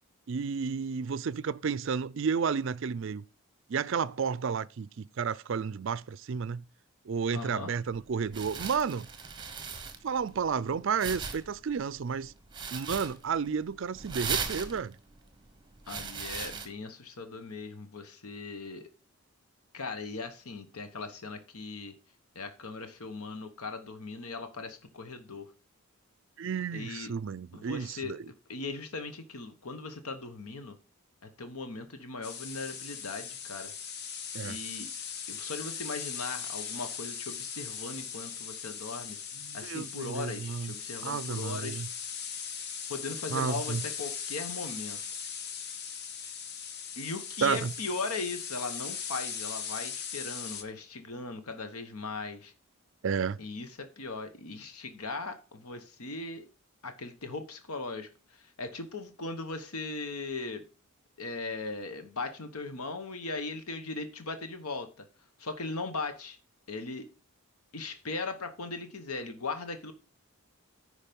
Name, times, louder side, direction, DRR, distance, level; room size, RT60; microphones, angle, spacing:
voice 1, 0.3-3.2 3.7-6.6 7.1-9.1 10.0-12.3 12.7-14.9 26.4-28.2 34.3-34.6 39.4-40.7 41.0-41.9 43.3-43.8 47.4-47.7 53.0-53.4, right 6 dB, 55° right, 0.4 m, -32 dB
voice 2, 7.3-7.7 15.9-18.9 19.7-21.9 22.3-25.5 26.7-27.1 27.5-30.8 31.4-33.7 34.4-34.9 35.3-39.2 39.5-41.8 42.9-45.0 47.0-52.5 53.4-56.5 56.8-60.6 61.2-65.0 65.4-66.4 66.7-67.1 67.7-69.9, left 3 dB, 80° left, 1.1 m, -38 dB
sound 1, 7.9-16.7, right 5 dB, 20° right, 1.1 m, -39 dB
sound 2, 32.2-50.6, left 7 dB, 45° left, 0.9 m, -39 dB
10.0 x 4.9 x 5.3 m
head